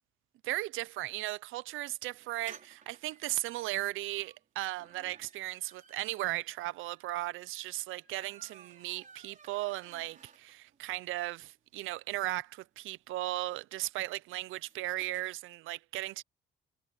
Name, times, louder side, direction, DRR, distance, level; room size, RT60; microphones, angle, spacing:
voice 1, 0.4-16.2, right 17 dB, 90° right, 0.6 m, -36 dB
sound 1, 2.2-10.8 11.2-11.3 11.5-11.6 11.8-15.2, right 6 dB, 40° right, 5.0 m, -58 dB
cardioid pair, 90°, 20 cm